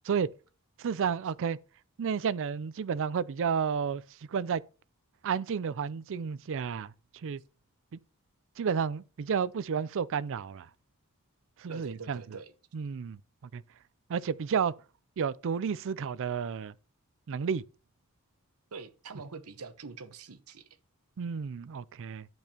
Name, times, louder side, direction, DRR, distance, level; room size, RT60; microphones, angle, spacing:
voice 1, 0.8-1.6 2.0-4.0 4.3-4.6 5.2-6.9 7.2-7.4 7.9-8.0 8.6-10.7 11.6-12.2 12.7-13.2 13.5-13.6 14.1-14.7 15.2-16.7 17.3-17.6 21.2-22.3, right 6 dB, 60° right, 0.4 m, -31 dB
voice 2, 11.7-12.5 18.7-20.7, right 4 dB, 80° right, 0.9 m, -44 dB
10.5 x 8.6 x 2.9 m
head